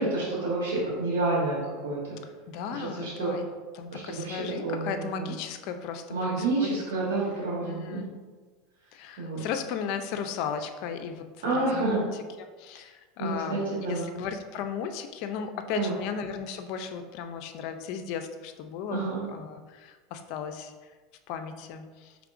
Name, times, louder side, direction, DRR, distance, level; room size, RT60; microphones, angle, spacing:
voice 1, 0.0-2.0 2.7-3.3 3.9-5.3 6.1-7.8 9.2-9.4 11.4-12.0 13.2-14.1 15.7-15.9 18.9-19.2, right 2 dB, 85° right, -7 dB, 1.2 m, -29 dB
voice 2, 2.5-3.4 3.7-6.8 7.6-8.1 8.9-20.7 21.3-22.2, left 7 dB, 60° left, 7 dB, 0.4 m, -36 dB
4.7 x 3.4 x 2.5 m, 1.4 s
supercardioid pair, 130°, 0 cm